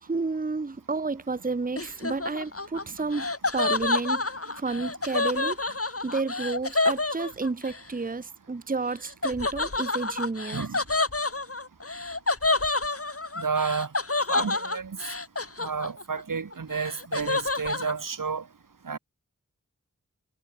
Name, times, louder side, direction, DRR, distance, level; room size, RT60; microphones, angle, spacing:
voice 1, 0.0-5.6 6.0-10.6, right 3 dB, 25° right, 0.8 m, -31 dB
Laughter, 1.8-7.8 9.2-16.2 16.5-17.9, left 3 dB, 45° left, 2.5 m, -28 dB
voice 2, 13.4-13.9 14.3-15.0 15.6-18.4 18.8-19.0, right 5 dB, 85° right, 1.3 m, -30 dB
wide cardioid pair, 55°, 32 cm